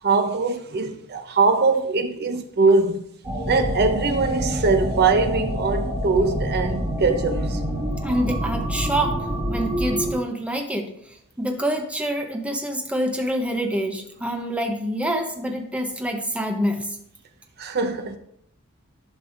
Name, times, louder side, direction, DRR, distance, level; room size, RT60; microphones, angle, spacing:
voice 1, 0.0-3.0 3.5-7.6 17.6-18.2, right 3 dB, 50° right, 0.8 m, -22 dB
sound 1, 3.2-10.1, equal, 20° right, 1.4 m, -27 dB
voice 2, 8.0-10.9 11.4-17.0, equal, 5° right, 0.8 m, -26 dB
11.0 x 5.4 x 2.6 m
head